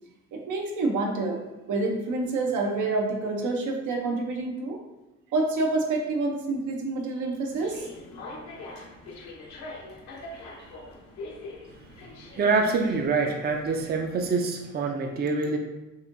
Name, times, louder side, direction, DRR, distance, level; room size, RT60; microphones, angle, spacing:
voice 1, 0.3-1.4 1.7-4.8 5.3-7.9, right 3 dB, 75° right, 1 dB, 0.7 m, -27 dB
sound 1, 7.5-14.3, left 2 dB, 70° left, 0.7 m, -43 dB
voice 2, 11.8-15.6, right 4 dB, 35° right, 3 dB, 0.4 m, -26 dB
4.2 x 2.6 x 2.5 m, 1.0 s
cardioid pair, 90°, 30 cm